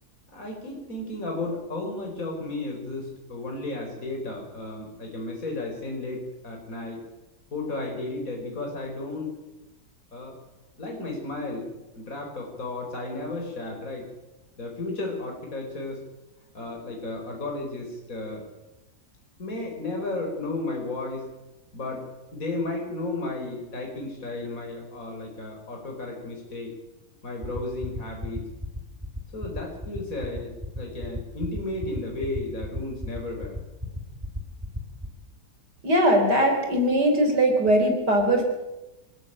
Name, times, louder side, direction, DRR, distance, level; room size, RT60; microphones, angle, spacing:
voice 1, 0.3-7.0 7.5-9.3 10.1-10.3 10.8-11.7 11.9-14.1 14.6-16.0 16.5-18.4 19.4-21.3 21.7-22.0 22.3-26.7 27.2-28.5 29.3-33.6, left 2 dB, 50° left, 1 dB, 5.1 m, -33 dB
sound 1, 27.4-35.1, equal, 15° right, 3.7 m, -33 dB
voice 2, 35.8-38.4, right 1 dB, 75° right, 3 dB, 4.4 m, -20 dB
26.0 x 14.0 x 9.0 m, 1.0 s
omnidirectional pair, 1.8 m